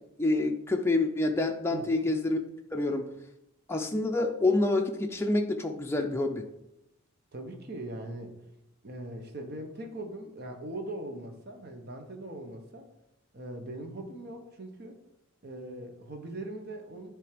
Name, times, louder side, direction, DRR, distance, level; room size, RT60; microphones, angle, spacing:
voice 1, 0.2-2.4 2.7-3.1 3.7-6.4, left 2 dB, 10° left, 2 dB, 0.5 m, -27 dB
voice 2, 1.7-2.1 7.3-8.4 8.8-12.9 13.3-15.0 15.4-17.1, right 1 dB, 45° right, 4 dB, 1.1 m, -40 dB
10.0 x 3.4 x 5.1 m, 0.85 s
head